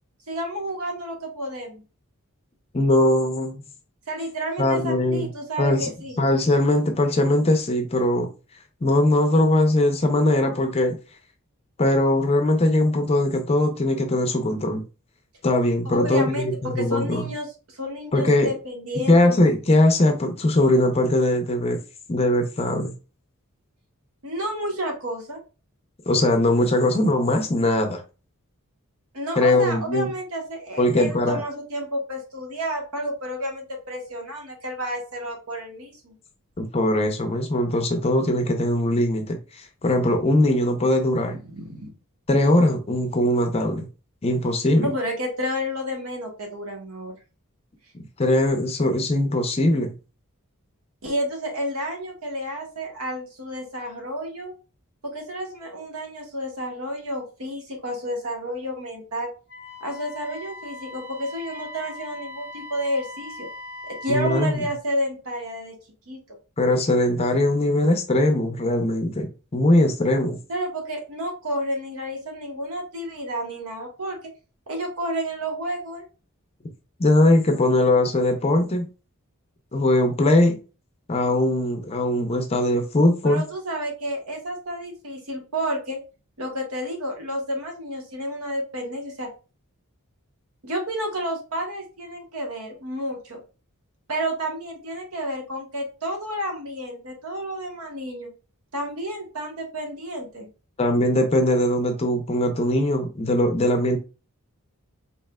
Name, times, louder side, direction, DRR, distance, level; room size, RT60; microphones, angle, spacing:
voice 1, 0.3-1.8 4.1-6.2 15.9-19.2 24.2-25.4 29.1-36.1 41.3-41.9 44.8-47.1 51.0-54.5 55.0-59.3 59.8-63.5 63.8-65.7 66.1-66.2 70.5-74.2 74.7-76.0 83.2-86.0 86.4-89.3 90.6-93.4 94.1-98.3 98.7-100.5, equal, 80° right, 1.1 m, -30 dB
voice 2, 2.7-3.6 4.6-5.3 5.6-5.9 6.2-8.3 8.8-11.0 11.8-14.8 15.4-17.3 18.1-18.5 19.1-21.8 22.1-22.9 26.1-28.0 29.4-30.1 30.8-31.4 36.6-41.4 42.3-43.9 44.2-44.9 48.2-49.9 64.1-64.6 66.6-70.4 77.0-78.8 79.7-80.6 81.1-83.4 100.8-104.0, left 1 dB, 30° left, 0.5 m, -20 dB
Wind instrument woodwind instrument, 59.5-64.5, left 2 dB, 30° right, 1.3 m, -40 dB
4.2 x 3.1 x 2.2 m
head